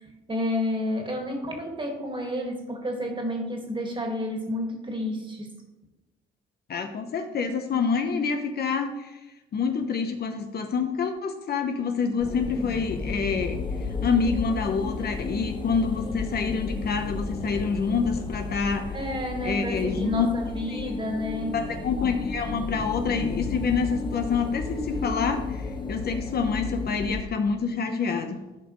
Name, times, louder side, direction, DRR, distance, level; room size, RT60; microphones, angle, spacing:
voice 1, 0.3-5.5 18.9-21.6, left 1 dB, 25° right, 2 dB, 1.9 m, -30 dB
voice 2, 6.7-9.2 9.5-13.6 14.0-18.9 19.4-20.3 20.7-20.9 21.5-28.4, left 5 dB, 50° left, 6 dB, 0.9 m, -27 dB
sound 1, 12.2-27.2, left 3 dB, 25° left, 0.9 m, -33 dB
12.5 x 5.2 x 3.1 m, 1.1 s
cardioid pair, 90°, 20 cm